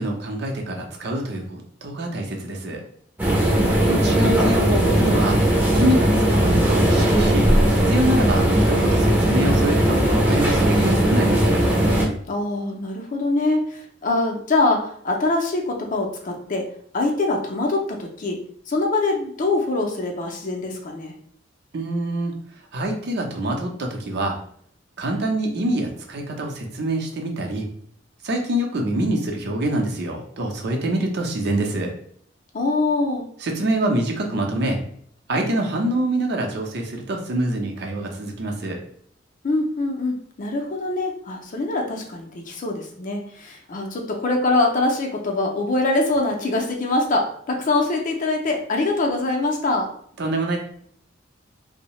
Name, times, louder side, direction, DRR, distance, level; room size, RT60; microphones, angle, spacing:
voice 1, 0.0-2.8 3.9-5.4 5.7-7.5 7.9-11.6 21.7-22.3 22.7-24.4 25.0-27.7 28.2-31.9 33.4-34.8 35.3-38.8 50.2-50.6, right 1 dB, 60° right, 1 dB, 0.6 m, -25 dB
sound 1, 3.2-12.0, right 1 dB, 10° right, 0.5 m, -18 dB
voice 2, 3.3-4.0 12.3-16.7 16.9-18.4 18.7-21.1 32.5-33.3 39.4-49.9, left 2 dB, 45° left, 1 dB, 0.5 m, -24 dB
2.7 x 2.0 x 3.0 m, 0.63 s
head